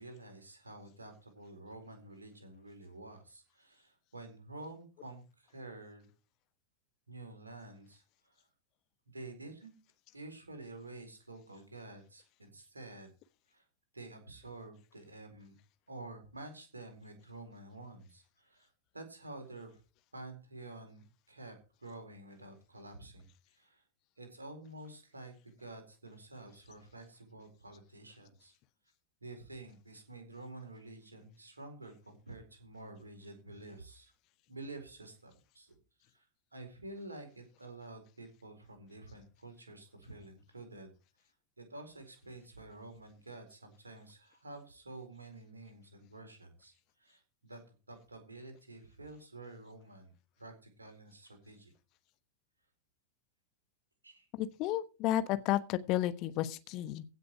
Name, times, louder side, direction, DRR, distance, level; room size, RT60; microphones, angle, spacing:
voice 1, 0.0-6.1 7.1-8.4 9.1-9.7 10.1-13.1 13.5-13.6 13.9-15.6 15.9-18.7 18.9-19.8 20.1-23.3 23.5-23.8 24.2-28.5 29.2-34.1 34.5-35.7 36.1-36.3 36.5-40.9 41.6-46.7 47.0-47.6 47.9-50.1 50.4-51.7 54.0-54.3, right 2 dB, 80° right, 4.4 m, -49 dB
voice 2, 54.3-57.0, left 13 dB, 40° left, 1.2 m, -32 dB
16.0 x 6.7 x 4.8 m
figure-of-eight pair, 90°, 0 cm